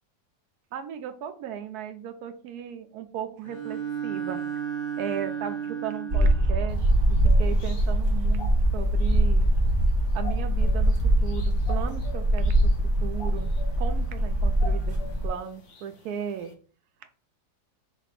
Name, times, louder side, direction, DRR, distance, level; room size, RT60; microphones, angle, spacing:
voice 1, 0.7-4.4 5.0-9.5 10.1-12.7 13.0-16.5 17.0-17.1, right 8 dB, 70° right, 9 dB, 1.0 m, -36 dB
Bowed string instrument, 3.4-6.6, right 8 dB, 30° left, 0.9 m, -33 dB
sound 1, 6.1-15.3, right 1 dB, 30° right, 1.0 m, -23 dB
sound 2, 6.7-16.5, left 3 dB, 50° left, 1.0 m, -46 dB
4.2 x 2.5 x 4.7 m, 0.41 s
omnidirectional pair, 2.0 m